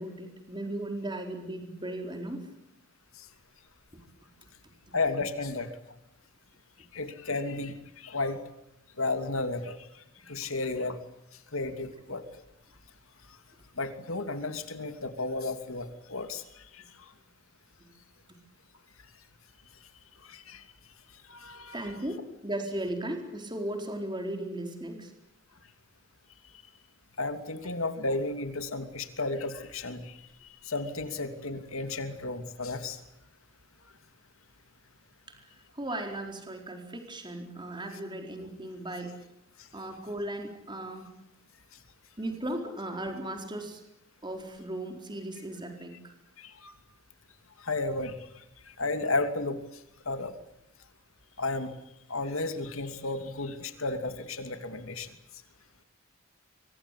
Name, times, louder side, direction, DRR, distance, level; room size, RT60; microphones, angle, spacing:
voice 1, 0.0-2.5 3.9-4.0 4.4-4.5 4.9-5.0 10.2-10.3 21.7-25.1 35.3-35.4 35.7-39.1 39.7-41.1 42.2-43.8 44.2-46.1, right 1 dB, 20° right, 4 dB, 4.2 m, -37 dB
voice 2, 4.9-5.7 6.9-8.4 9.0-9.8 10.3-11.0 11.5-12.2 13.8-16.8 20.2-20.6 21.3-22.0 27.2-33.0 46.4-46.7 47.6-49.6 50.1-50.3 51.4-51.7 52.1-55.1, left 3 dB, 80° left, 8 dB, 2.8 m, -33 dB
25.5 x 24.0 x 8.4 m, 0.80 s
head